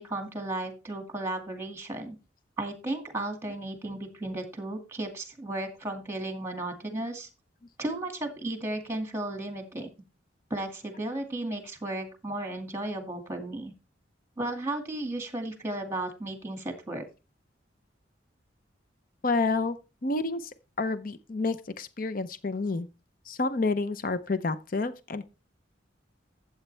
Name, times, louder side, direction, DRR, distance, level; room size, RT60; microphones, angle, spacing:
voice 1, 0.0-2.2 2.6-7.3 7.8-9.9 10.5-13.7 14.4-17.0, right 2 dB, 15° right, 2.1 m, -34 dB
voice 2, 19.2-19.8 20.0-22.9 23.3-25.2, left 3 dB, 45° left, 0.7 m, -29 dB
12.5 x 8.0 x 3.3 m
head